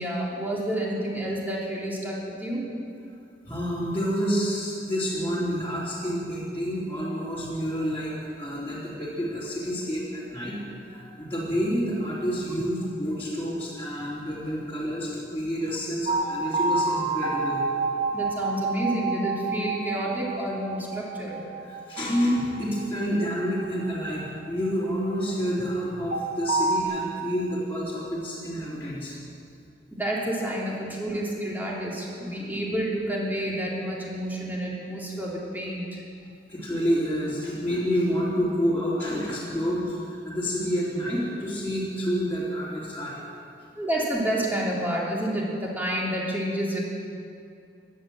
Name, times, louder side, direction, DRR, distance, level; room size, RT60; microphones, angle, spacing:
voice 1, 0.0-2.6 18.1-21.5 29.9-36.0 43.7-46.8, right 1 dB, 10° right, -5 dB, 3.2 m, -29 dB
voice 2, 3.4-17.6 21.6-29.1 31.1-31.2 32.2-32.3 36.5-43.2, equal, 10° left, -11 dB, 3.3 m, -29 dB
sound 1, 16.1-25.1 26.1-26.8, right 3 dB, 40° right, 1.7 m, -29 dB
16.5 x 11.0 x 7.8 m, 2.5 s
head